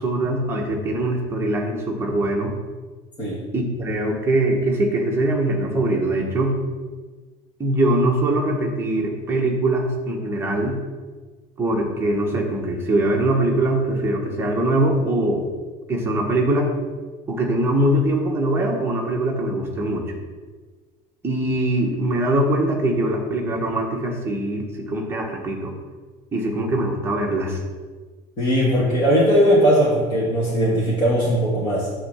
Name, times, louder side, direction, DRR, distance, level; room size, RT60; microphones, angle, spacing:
voice 1, 0.0-2.5 3.5-6.5 7.6-10.8 11.6-15.5 15.9-16.7 17.3-20.2 21.2-25.7 26.3-27.6, right 1 dB, 15° right, -1 dB, 1.3 m, -22 dB
voice 2, 28.4-31.9, equal, 25° left, -9 dB, 2.3 m, -19 dB
9.9 x 3.7 x 7.1 m, 1.4 s
cardioid pair, 175°, 17 cm